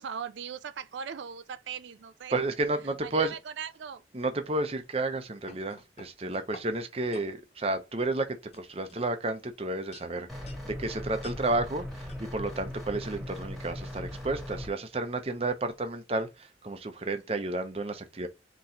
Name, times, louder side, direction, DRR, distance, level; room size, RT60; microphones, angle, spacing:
voice 1, 0.0-2.4 2.8-4.0, right 7 dB, 85° right, 0.4 m, -39 dB
voice 2, 2.3-3.3 4.1-18.3, right 2 dB, 35° right, 0.7 m, -31 dB
sound 1, 5.1-6.7 7.1-7.3 8.0-8.2 8.5-9.5 9.9-10.7 11.2-11.4 12.1-12.2, left 2 dB, 35° left, 0.9 m, -50 dB
sound 2, 10.3-14.7, left 1 dB, ahead, 1.7 m, -39 dB
4.3 x 3.0 x 3.7 m
head